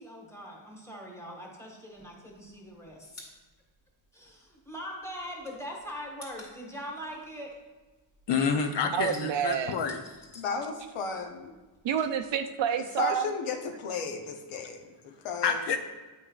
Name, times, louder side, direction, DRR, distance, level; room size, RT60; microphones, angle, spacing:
voice 1, 0.0-3.1 4.1-7.5, equal, 5° left, -2 dB, 1.3 m, -41 dB
sound 1, 2.0-4.8 5.0-8.3 8.6-11.3 11.5-12.6, left 1 dB, 35° left, 1.8 m, -51 dB
voice 2, 8.3-10.0 15.4-15.8, left 6 dB, 60° left, 6 dB, 0.6 m, -28 dB
voice 3, 8.9-9.8 11.8-13.3, right 8 dB, 60° right, 8 dB, 0.6 m, -28 dB
voice 4, 10.4-11.3 13.0-15.6, left 5 dB, 90° left, 5 dB, 0.9 m, -34 dB
8.7 x 5.5 x 2.3 m, 1.2 s
wide cardioid pair, 130°, 49 cm